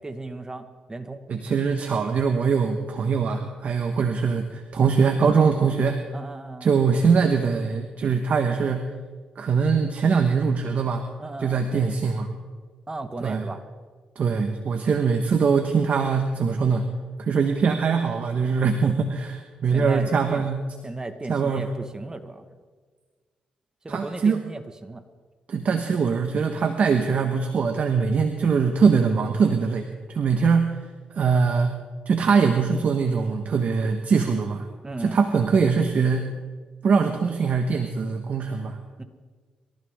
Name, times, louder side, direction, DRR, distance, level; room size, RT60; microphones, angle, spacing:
voice 1, 0.0-1.2 6.1-6.8 11.2-11.7 12.9-13.6 19.7-20.4 20.8-22.5 23.8-25.0 34.8-35.2 39.0-39.1, right 2 dB, 25° right, 8 dB, 1.7 m, -36 dB
voice 2, 1.3-6.0 6.6-8.9 9.4-11.1 11.4-12.3 13.2-13.4 14.1-16.9 17.2-20.6 21.3-21.7 23.9-24.4 25.5-30.8 31.1-31.8 32.1-34.7 35.0-36.3 36.8-38.8, right 5 dB, 55° right, 6 dB, 1.3 m, -22 dB
24.0 x 14.5 x 3.7 m, 1.5 s
supercardioid pair, 65°, 3 cm